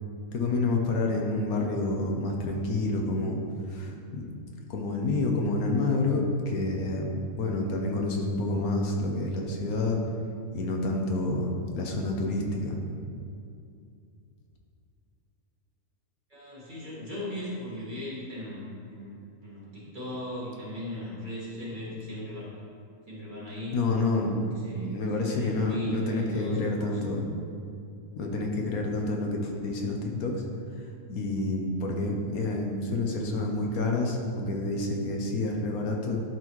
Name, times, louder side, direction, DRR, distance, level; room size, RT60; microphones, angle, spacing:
voice 1, 0.3-3.4 3.7-4.2 4.7-10.0 10.5-11.5 11.7-12.8 23.7-24.4 24.8-27.2 28.2-30.4 31.1-36.2, left 2 dB, 75° left, 1 dB, 1.2 m, -28 dB
voice 2, 16.3-19.2 19.4-22.6 23.1-23.8 24.3-27.0, equal, 35° right, -7 dB, 1.8 m, -38 dB
11.0 x 4.0 x 3.1 m, 2.5 s
omnidirectional pair, 1.6 m